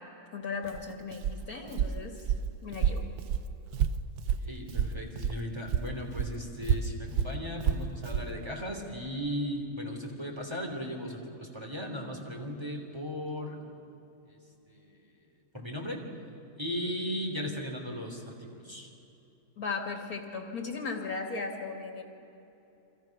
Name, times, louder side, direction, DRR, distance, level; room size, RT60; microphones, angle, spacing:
voice 1, 0.3-2.2 2.6-3.0 19.6-22.0, left 4 dB, 65° left, 2 dB, 2.9 m, -36 dB
Walk footsteps, 0.6-5.4 5.7-8.3, right 7 dB, 75° right, 1.3 m, -30 dB
voice 2, 4.3-13.6 14.3-14.4 14.7-15.0 15.5-16.0 16.6-18.9, equal, 15° right, 0 dB, 3.1 m, -37 dB
28.5 x 26.0 x 6.0 m, 2.9 s
omnidirectional pair, 1.7 m